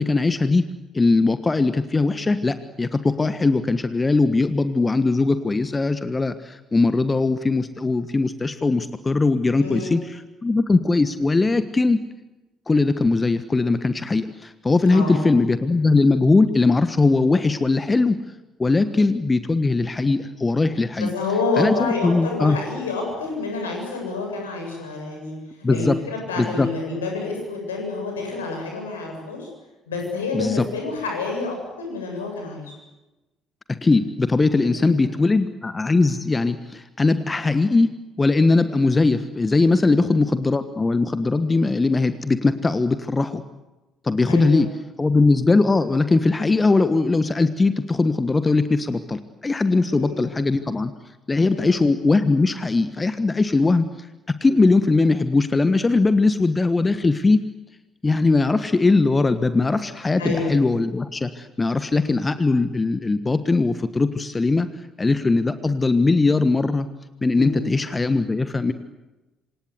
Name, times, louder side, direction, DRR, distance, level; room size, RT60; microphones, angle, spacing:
voice 1, 0.0-12.0 12.7-18.2 18.6-21.1 21.6-22.6 25.6-26.0 26.4-26.7 30.3-30.6 33.8-37.9 38.2-43.4 44.0-44.7 45.0-50.9 51.3-54.1 54.4-57.4 58.0-64.7 65.0-66.9 67.2-68.7, left 3 dB, 20° left, 12 dB, 1.4 m, -20 dB
voice 2, 9.6-10.0 14.9-15.2 21.0-25.3 25.7-29.5 29.9-32.6 34.6-35.0 39.9-40.2 44.3-44.6 49.9-50.3 51.5-51.8 60.2-60.6 67.3-67.7, left 3 dB, 75° left, 1 dB, 7.9 m, -28 dB
27.5 x 26.0 x 8.1 m, 1.1 s
figure-of-eight pair, 50°, 0 cm